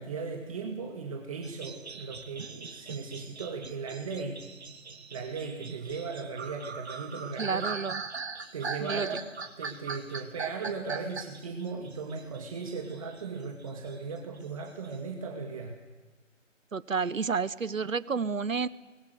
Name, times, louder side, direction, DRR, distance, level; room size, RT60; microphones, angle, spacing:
voice 1, 0.0-4.5 5.1-7.7 8.5-9.2 9.6-15.8, right 4 dB, 25° right, 2 dB, 2.2 m, -37 dB
sound 1, 1.4-13.3 13.6-15.0, right 4 dB, 55° right, 2.5 m, -40 dB
voice 2, 7.4-8.0 8.8-9.1 16.7-18.7, right 5 dB, 85° right, 18 dB, 1.2 m, -30 dB
25.5 x 21.5 x 8.3 m, 1.2 s
figure-of-eight pair, 160°, 38 cm